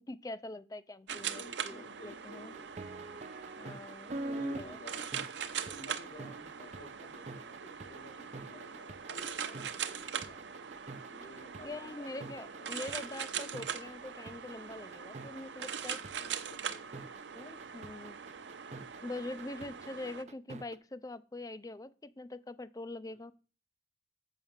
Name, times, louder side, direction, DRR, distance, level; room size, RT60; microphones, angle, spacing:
voice 1, 0.1-2.5 3.6-4.8 11.6-16.0 17.4-18.2 19.0-23.3, left 2 dB, 20° left, 13 dB, 0.4 m, -44 dB
voice 2, 1.1-2.7 4.1-5.1 5.7-10.4 11.1-13.4 16.0-17.2 23.1-23.3, left 1 dB, 55° left, 1 dB, 2.5 m, -53 dB
sound 1, 1.1-20.2, right 7 dB, 90° right, 0.6 m, -42 dB
sound 2, 2.1-20.8, right 2 dB, 40° right, 0.5 m, -45 dB
6.4 x 6.2 x 7.2 m, 0.38 s
head